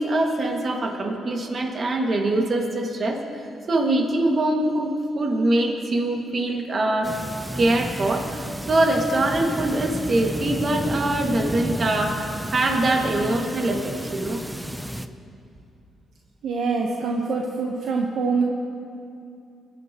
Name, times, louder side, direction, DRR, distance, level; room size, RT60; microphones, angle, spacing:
voice 1, 0.0-7.1 7.6-14.4, right 1 dB, 45° right, 1 dB, 2.0 m, -23 dB
sound 1, 7.0-15.1, right 1 dB, 5° right, 0.6 m, -32 dB
voice 2, 16.4-18.4, right 4 dB, 70° right, 0 dB, 1.1 m, -24 dB
22.0 x 12.0 x 3.0 m, 2.5 s
cardioid pair, 80°, 0 cm